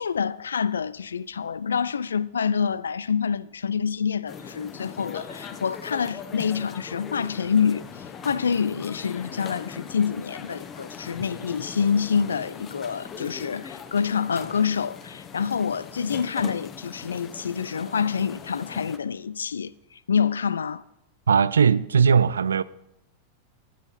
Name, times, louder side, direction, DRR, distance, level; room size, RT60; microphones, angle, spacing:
voice 1, 0.0-20.8, left 6 dB, 70° left, 0.3 m, -27 dB
sound 1, 4.3-19.0, left 7 dB, 25° left, 1.0 m, -40 dB
voice 2, 21.3-22.6, right 6 dB, 70° right, 0.4 m, -19 dB
13.0 x 8.8 x 4.1 m
figure-of-eight pair, 90°, 0 cm